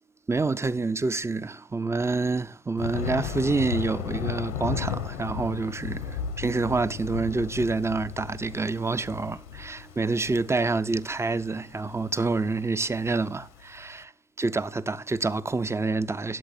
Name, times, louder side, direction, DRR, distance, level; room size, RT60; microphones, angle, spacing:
voice 1, 0.3-14.1 14.4-16.4, right 3 dB, 10° right, 0.4 m, -27 dB
Thunder, 2.8-13.9, left 8 dB, 85° left, 1.5 m, -35 dB
18.0 x 8.0 x 2.6 m
hypercardioid pair, 75°, 35 cm